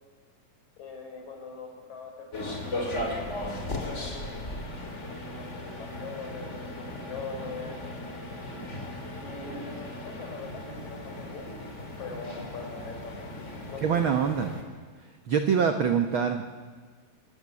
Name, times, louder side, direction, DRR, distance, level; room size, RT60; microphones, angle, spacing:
voice 1, 0.8-4.4 5.2-7.9 9.2-13.3 13.7-14.2, left 4 dB, 55° left, 3 dB, 5.4 m, -42 dB
sound 1, 2.3-14.6, left 1 dB, 20° left, 2.6 m, -37 dB
voice 2, 13.8-14.5 15.3-16.4, right 7 dB, 80° right, 6 dB, 1.1 m, -24 dB
26.5 x 14.5 x 9.7 m, 1.5 s
omnidirectional pair, 3.9 m